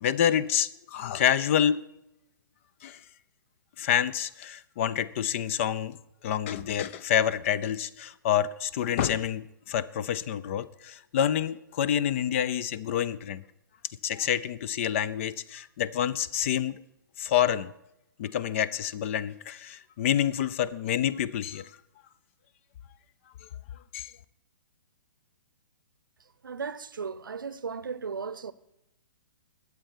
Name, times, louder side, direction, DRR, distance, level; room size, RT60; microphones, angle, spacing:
voice 1, 0.0-1.8 2.8-3.0 3.8-6.0 6.2-13.4 14.0-16.8 17.2-17.7 18.2-21.7 23.9-24.1, left 9 dB, 35° left, 0.5 m, -27 dB
voice 2, 26.4-28.5, right 5 dB, 70° right, 0.7 m, -36 dB
21.0 x 8.2 x 4.4 m
figure-of-eight pair, 120°, 11 cm